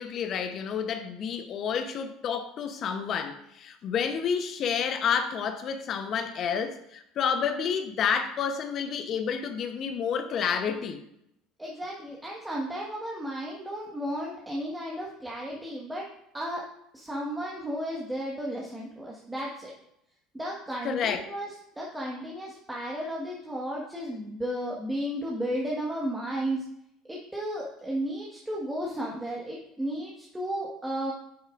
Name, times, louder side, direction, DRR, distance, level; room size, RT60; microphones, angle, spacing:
voice 1, 0.0-11.0 20.8-21.2, left 7 dB, 50° left, 8 dB, 0.8 m, -29 dB
voice 2, 11.6-16.0 16.3-16.6 16.9-19.7 20.3-21.5 21.8-26.6 27.1-31.1, equal, 10° right, -3 dB, 1.5 m, -33 dB
8.8 x 7.2 x 2.5 m, 0.76 s
hypercardioid pair, 75°, 0 cm